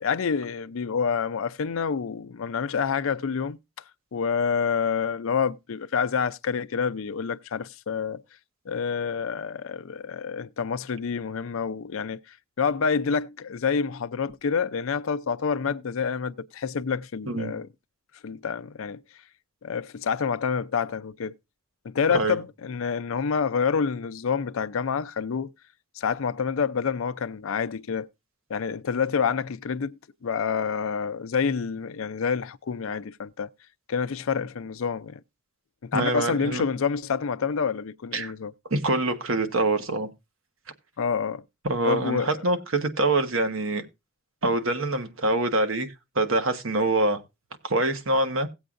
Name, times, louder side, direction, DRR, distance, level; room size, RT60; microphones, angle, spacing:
voice 1, 0.0-3.6 4.1-8.2 8.7-17.7 18.2-19.0 19.6-21.3 21.8-25.5 26.0-28.1 28.5-29.9 30.2-33.5 33.9-35.2 35.8-38.5 41.0-41.4 41.8-42.4, left 6 dB, 70° left, 0.5 m, -28 dB
voice 2, 35.9-36.6 38.1-38.3 38.7-40.1 41.6-43.8 44.4-47.2 47.6-48.5, right 2 dB, 70° right, 1.3 m, -25 dB
17.5 x 7.9 x 2.5 m
head